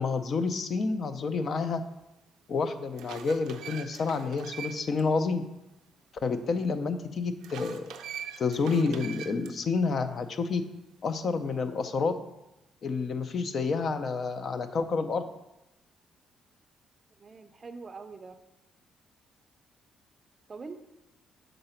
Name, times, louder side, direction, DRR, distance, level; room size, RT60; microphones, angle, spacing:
voice 1, 0.0-1.8 2.5-5.4 6.2-7.9 8.4-10.6 11.0-12.1 12.8-15.2, left 4 dB, 55° left, 10 dB, 0.5 m, -29 dB
sound 1, 2.0-2.1 2.7-5.0 5.4-5.5 7.4-9.5, right 8 dB, 90° right, 0.4 m, -42 dB
voice 2, 17.2-18.4 20.5-20.8, right 4 dB, 35° right, 8 dB, 0.4 m, -43 dB
6.6 x 4.0 x 4.3 m, 0.93 s
cardioid pair, 90°, 0 cm